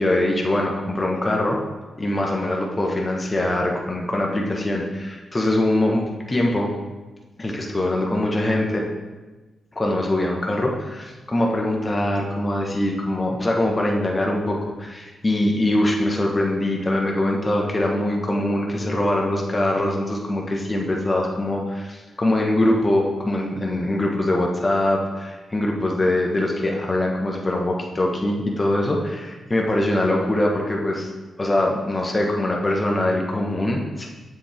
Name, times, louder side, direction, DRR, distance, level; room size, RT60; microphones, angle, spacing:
voice 1, 0.0-1.6 2.0-6.7 7.4-8.9 9.7-31.1 31.4-34.1, left 1 dB, 30° left, -1 dB, 1.5 m, -23 dB
7.2 x 7.2 x 3.6 m, 1.2 s
cardioid pair, 60°, 0 cm